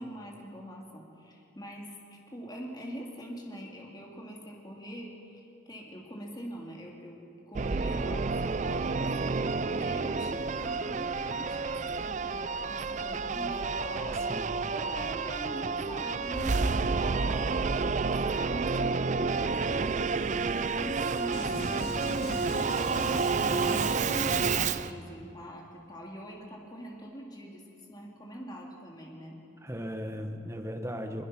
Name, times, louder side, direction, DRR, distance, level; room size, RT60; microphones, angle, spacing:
voice 1, 0.0-9.2 9.7-14.2 14.7-19.3 19.7-20.1 20.5-23.9 24.3-29.4, equal, 20° left, -1 dB, 2.5 m, -43 dB
Singing / Musical instrument, 7.5-24.9, right 4 dB, 40° right, 0.4 m, -30 dB
voice 2, 14.1-14.7 23.5-23.8 29.6-31.3, equal, 15° right, 4 dB, 1.4 m, -38 dB
sound 1, 21.3-25.0, left 1 dB, 55° left, 2.6 m, -38 dB
22.5 x 22.0 x 6.1 m, 2.6 s
head